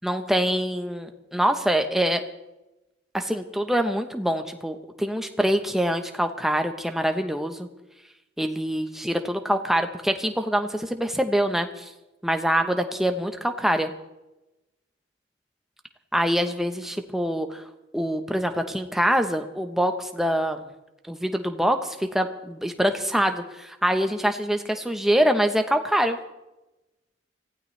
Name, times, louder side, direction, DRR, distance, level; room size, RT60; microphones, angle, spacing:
voice 1, 0.0-2.2 3.1-7.7 8.4-11.9 12.2-13.9 16.1-17.6 17.9-20.7 21.1-26.2, equal, ahead, 5 dB, 0.9 m, -25 dB
25.0 x 15.5 x 3.3 m, 1.0 s
head